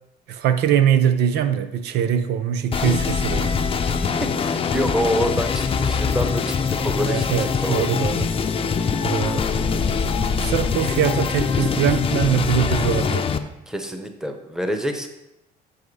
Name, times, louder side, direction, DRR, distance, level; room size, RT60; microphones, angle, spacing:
voice 1, 0.3-3.6 7.0-8.3 9.0-9.5 10.4-13.3, right 9 dB, 80° right, 10 dB, 0.6 m, -22 dB
sound 1, 2.7-13.4, left 5 dB, 35° left, 0.6 m, -23 dB
voice 2, 3.9-7.9 8.5-8.7 13.7-15.1, equal, 5° right, 5 dB, 1.0 m, -27 dB
Telephone, 5.0-5.2 5.5-5.6 6.5-6.7 6.9-7.0 7.8-8.1 8.9-9.2 10.0-10.3 10.9-11.2 12.1-12.2 12.4-13.1, left 17 dB, 75° left, 0.5 m, -35 dB
7.6 x 6.6 x 4.8 m, 0.90 s
cardioid pair, 110°, 17 cm